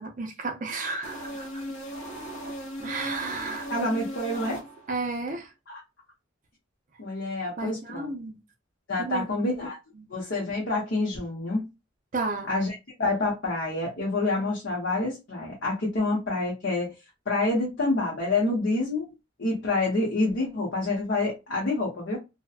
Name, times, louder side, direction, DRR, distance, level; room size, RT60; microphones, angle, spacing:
voice 1, 0.0-1.6 2.4-2.5 2.8-3.7 4.3-4.6 4.9-5.5 7.6-8.3 9.0-9.3 10.0-10.1 12.1-12.5, right 3 dB, 40° right, 0.5 m, -33 dB
sound 1, 1.0-5.1, equal, 85° left, 0.9 m, -38 dB
voice 2, 3.7-4.6 5.7-5.8 7.0-8.1 8.9-9.8 10.1-11.7 12.5-16.9 17.3-19.1 19.4-22.2, left 2 dB, 60° left, 0.8 m, -27 dB
2.7 x 2.2 x 2.3 m
head